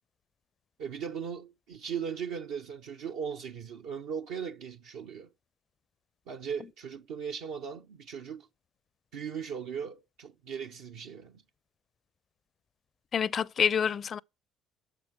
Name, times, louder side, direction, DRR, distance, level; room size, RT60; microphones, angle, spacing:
voice 1, 0.8-5.3 6.3-8.5 9.1-11.4, right 7 dB, 65° right, 0.8 m, -38 dB
voice 2, 13.1-14.2, left 7 dB, 45° left, 0.6 m, -27 dB
12.5 x 7.0 x 7.8 m
figure-of-eight pair, 50°, 0 cm